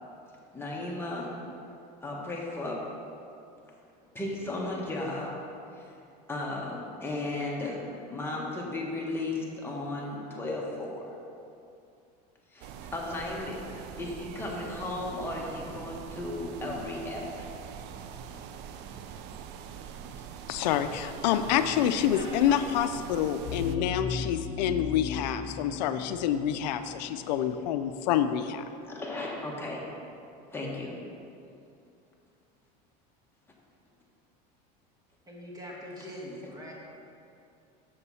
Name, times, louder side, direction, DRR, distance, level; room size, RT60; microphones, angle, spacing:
voice 1, 0.5-1.3 2.0-2.8 4.1-5.3 5.8-5.9 6.3-7.8 8.1-11.1 12.5-17.5 28.8-29.8 30.5-30.9, left 2 dB, 10° left, -3 dB, 1.4 m, -35 dB
sound 1, 12.6-23.8, right 8 dB, 55° right, 0.5 m, -43 dB
voice 2, 20.5-28.6, left 10 dB, 85° left, 10 dB, 0.4 m, -27 dB
voice 3, 22.1-22.7 35.3-36.7, equal, 20° right, -4 dB, 1.9 m, -42 dB
sound 2, 23.5-28.2, left 6 dB, 35° left, 0.7 m, -38 dB
7.1 x 6.9 x 4.1 m, 2.6 s
supercardioid pair, 120°, 21 cm